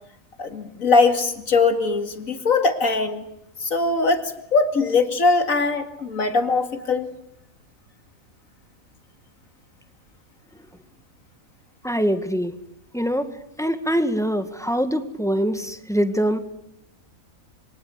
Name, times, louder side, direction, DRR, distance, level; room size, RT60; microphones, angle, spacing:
voice 1, 0.4-3.2 3.6-7.1, left 3 dB, 70° left, 7 dB, 2.7 m, -21 dB
voice 2, 11.8-12.5 12.9-13.3 13.6-16.4, equal, ahead, 8 dB, 1.9 m, -23 dB
26.5 x 24.0 x 8.6 m, 0.76 s
omnidirectional pair, 1.5 m